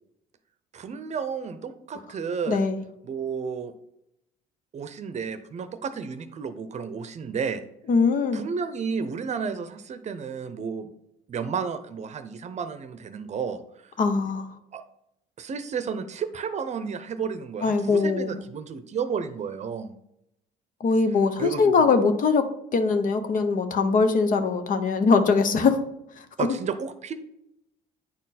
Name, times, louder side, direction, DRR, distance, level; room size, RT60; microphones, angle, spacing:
voice 1, 0.7-2.6 3.0-3.7 4.7-7.6 8.3-10.9 11.3-13.9 14.7-14.8 15.4-19.9 21.4-21.9 26.4-27.1, right 6 dB, 40° right, 10 dB, 0.7 m, -32 dB
voice 2, 2.5-2.8 7.9-8.4 14.0-14.5 17.6-18.3 20.8-25.8 26.2-26.5, left 4 dB, 50° left, 8 dB, 0.9 m, -22 dB
9.7 x 4.3 x 4.2 m, 0.80 s
cardioid pair, 110°, 17 cm